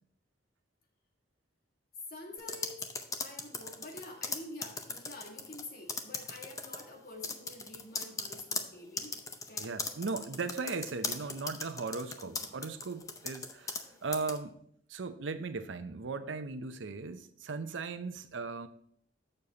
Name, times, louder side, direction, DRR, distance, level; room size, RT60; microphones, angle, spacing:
voice 1, 2.1-2.9 3.2-9.2 9.5-10.2 12.2-12.4, left 2 dB, 50° left, 1.5 m, -48 dB
sound 1, 2.4-5.6 5.9-6.8 7.2-13.9 14.1-14.4, left 4 dB, 20° left, 0.5 m, -38 dB
voice 2, 9.6-14.6 14.9-18.7, right 4 dB, 90° right, 0.6 m, -38 dB
7.0 x 6.8 x 3.9 m
head